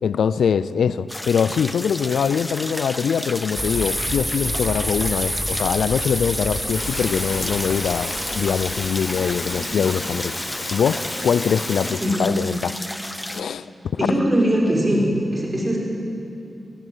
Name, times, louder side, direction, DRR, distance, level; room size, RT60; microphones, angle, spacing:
voice 1, 0.0-10.3 10.7-12.8 13.3-13.7, left 7 dB, 85° left, 16 dB, 0.4 m, -23 dB
sound 1, 1.1-13.4, left 1 dB, 15° left, 1.0 m, -33 dB
sound 2, 3.5-9.5, equal, 5° right, 5.2 m, -29 dB
sound 3, 6.7-11.9, left 1 dB, 35° left, 5.0 m, -32 dB
voice 2, 14.0-15.8, equal, 25° right, -2 dB, 6.2 m, -20 dB
20.0 x 15.5 x 9.1 m, 2.7 s
cardioid pair, 45°, 0 cm